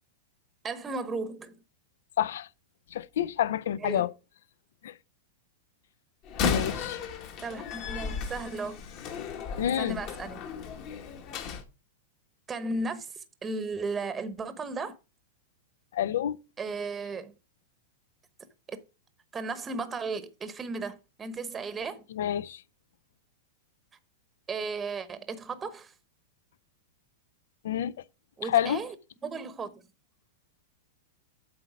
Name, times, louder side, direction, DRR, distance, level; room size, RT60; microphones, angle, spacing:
voice 1, 0.6-1.6 3.8-4.1 7.4-8.8 9.7-10.5 12.5-15.0 16.6-17.3 18.7-18.8 19.3-22.0 24.5-25.9 28.4-28.9 29.2-29.8, right 3 dB, 20° right, 0.9 m, -35 dB
voice 2, 2.2-2.5 2.9-4.1 4.8-4.9 6.5-7.0 9.6-10.0 15.9-16.4 22.1-22.6 27.6-27.9 28.4-28.8, left 11 dB, 75° left, 0.5 m, -28 dB
Slam, 6.2-11.6, left 6 dB, 45° left, 1.6 m, -34 dB
7.9 x 4.3 x 6.1 m
hypercardioid pair, 130°, 0 cm